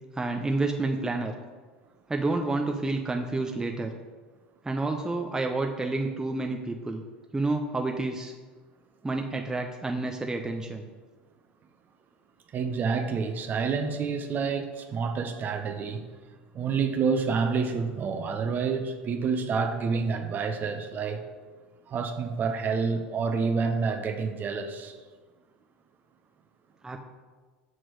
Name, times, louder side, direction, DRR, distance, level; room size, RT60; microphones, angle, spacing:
voice 1, 0.1-1.3 2.1-3.9 4.6-7.0 7.3-8.3 9.0-10.8 26.8-27.0, right 2 dB, 10° right, 3 dB, 0.6 m, -29 dB
voice 2, 12.5-16.0 16.5-21.2 21.9-25.0, right 5 dB, 35° right, 7 dB, 0.9 m, -28 dB
6.2 x 6.1 x 4.7 m, 1.4 s
hypercardioid pair, 85°, 5 cm